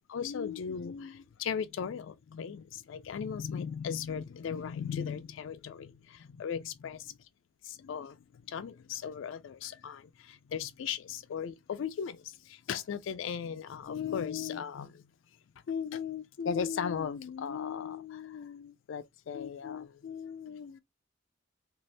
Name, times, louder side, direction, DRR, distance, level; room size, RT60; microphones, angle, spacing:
voice 1, 0.1-7.1 7.6-15.1 15.7-20.8, left 7 dB, 70° left, 0.3 m, -37 dB
2.9 x 2.6 x 3.2 m
head